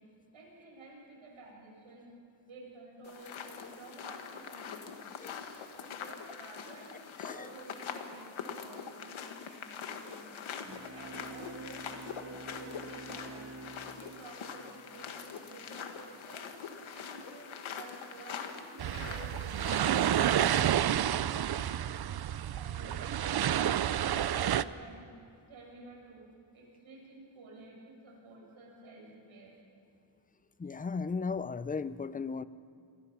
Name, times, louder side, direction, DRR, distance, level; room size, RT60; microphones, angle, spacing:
voice 1, 0.3-2.1 2.4-5.0 5.6-10.3 10.9-13.5 13.8-16.5 16.9-21.8 22.5-25.1 25.5-26.3 26.5-29.6, right 2 dB, 90° right, -2 dB, 7.0 m, -51 dB
sound 1, 3.0-20.7, left 6 dB, 85° left, 1.8 m, -44 dB
sound 2, 10.6-15.3, right 3 dB, 30° right, 1.8 m, -48 dB
sound 3, 18.8-24.6, right 10 dB, 55° right, 0.6 m, -29 dB
voice 2, 30.6-32.4, left 4 dB, 20° left, 16 dB, 0.5 m, -36 dB
28.5 x 22.0 x 5.7 m, 2.5 s
cardioid pair, 105°, 47 cm